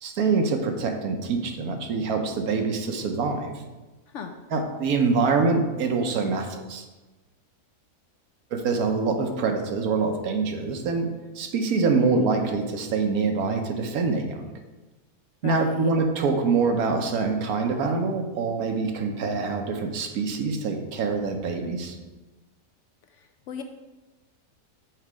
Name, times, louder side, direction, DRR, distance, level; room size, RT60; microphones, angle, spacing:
voice 1, 0.0-3.5 4.5-6.8 8.5-14.5 15.4-22.0, right 4 dB, 80° right, 5 dB, 1.3 m, -25 dB
voice 2, 15.4-15.9 23.2-23.6, left 6 dB, 65° left, 6 dB, 0.8 m, -36 dB
6.4 x 5.0 x 4.7 m, 1.2 s
omnidirectional pair, 1.6 m